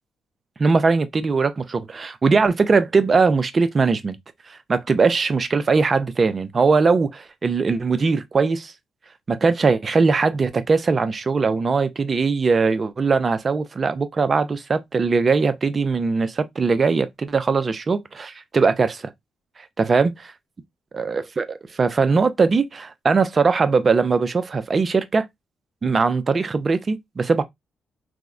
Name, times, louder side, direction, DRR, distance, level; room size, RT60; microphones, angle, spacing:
voice 1, 0.6-4.2 4.5-8.7 9.3-19.1 19.8-20.1 20.9-25.2 25.8-27.4, right 4 dB, 40° right, 0.5 m, -20 dB
3.4 x 2.1 x 2.4 m
cardioid pair, 70°, 0 cm